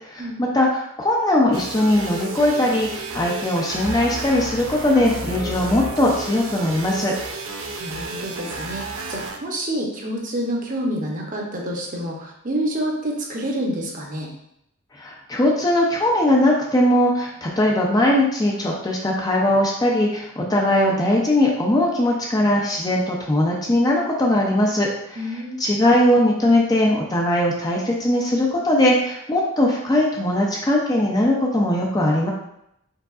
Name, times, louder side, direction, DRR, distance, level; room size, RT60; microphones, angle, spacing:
voice 1, 0.1-7.1 15.0-25.2 25.6-32.3, left 1 dB, 15° left, -2 dB, 0.5 m, -20 dB
sound 1, 1.5-9.4, right 3 dB, 60° right, 0.5 m, -33 dB
sound 2, 3.8-6.9, left 1 dB, 50° left, 0.9 m, -34 dB
voice 2, 7.8-8.8 9.1-14.3 25.2-25.6, equal, 35° right, -1 dB, 0.8 m, -28 dB
4.6 x 3.7 x 2.4 m, 0.77 s
head